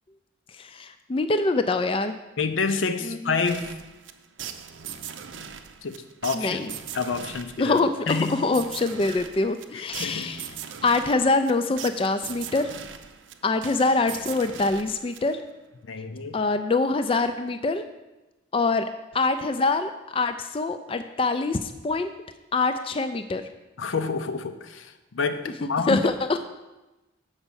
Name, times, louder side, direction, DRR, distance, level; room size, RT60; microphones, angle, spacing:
voice 1, 0.6-2.2 3.1-3.2 6.3-6.7 7.6-10.4 10.8-12.7 13.4-15.4 16.3-17.8 18.5-18.8 19.1-22.1 22.5-23.4 25.6-26.1, left 3 dB, 25° left, 8 dB, 0.3 m, -24 dB
voice 2, 2.4-3.7 5.8-7.8 8.1-8.5 9.7-10.3 15.8-16.4 23.8-26.0, left 4 dB, 85° left, 8 dB, 0.7 m, -28 dB
sound 1, 3.5-15.6, right 8 dB, 80° right, 0.6 m, -40 dB
7.1 x 5.3 x 7.0 m, 1.1 s
head